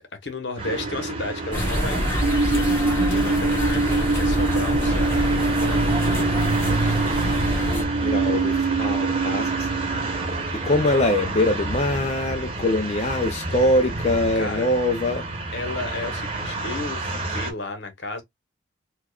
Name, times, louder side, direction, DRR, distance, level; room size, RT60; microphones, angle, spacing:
voice 1, 0.0-5.8 10.4-10.5 14.4-14.7 15.5-18.2, left 3 dB, 65° left, 1.1 m, -33 dB
sound 1, 0.6-17.5, right 2 dB, 30° right, 1.1 m, -29 dB
sound 2, 0.6-11.5, right 3 dB, 80° right, 0.6 m, -25 dB
sound 3, 1.5-7.8, equal, 15° left, 1.7 m, -26 dB
voice 2, 7.8-9.9 10.2-15.3, left 1 dB, 35° left, 0.5 m, -23 dB
4.5 x 2.4 x 2.3 m
head